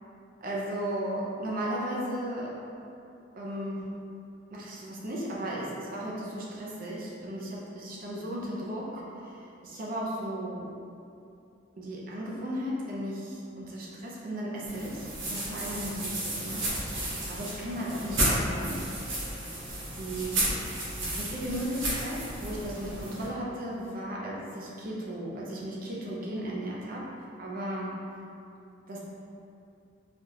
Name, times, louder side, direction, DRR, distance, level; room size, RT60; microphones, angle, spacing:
voice 1, 0.4-2.5 3.4-3.8 4.5-10.6 11.8-16.7 17.3-19.1 19.9-20.4 21.1-27.1 27.4-27.9 28.9-29.0, equal, 45° right, -4 dB, 0.5 m, -35 dB
sound 1, 14.6-23.3, right 1 dB, 75° right, 1.0 m, -33 dB
3.4 x 2.4 x 2.7 m, 2.6 s
head